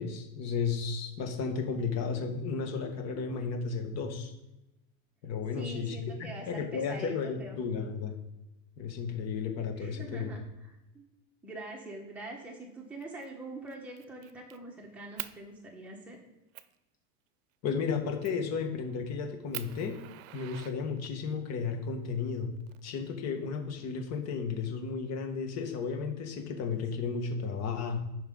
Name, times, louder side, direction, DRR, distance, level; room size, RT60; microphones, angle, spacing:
voice 1, 0.0-4.3 5.2-8.1 8.8-10.3 17.6-20.0 20.3-22.6 22.8-28.0, left 5 dB, 35° left, 4 dB, 1.7 m, -33 dB
voice 2, 5.5-7.6 9.8-11.1 11.4-16.2, right 2 dB, 5° right, -2 dB, 1.5 m, -44 dB
Fire, 13.0-13.3 13.7-14.6 15.2-15.4 16.0-16.1 16.5-16.8 18.2-18.5 19.0-19.1 19.5-21.3 22.3-23.3, right 16 dB, 65° right, 0.7 m, -44 dB
11.0 x 5.6 x 4.0 m, 0.94 s
supercardioid pair, 145°, 43 cm